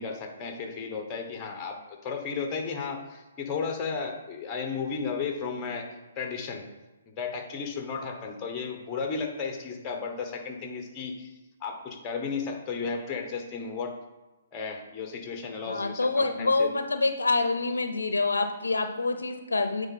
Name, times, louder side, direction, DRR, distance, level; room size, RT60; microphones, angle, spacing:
voice 1, 0.0-5.9 6.2-6.6 7.1-11.3 11.6-13.9 14.5-16.7, left 5 dB, 25° left, 4 dB, 1.2 m, -34 dB
voice 2, 15.7-19.9, left 3 dB, 85° left, 8 dB, 0.6 m, -26 dB
9.2 x 3.7 x 4.2 m, 1.1 s
hypercardioid pair, 135°, 0 cm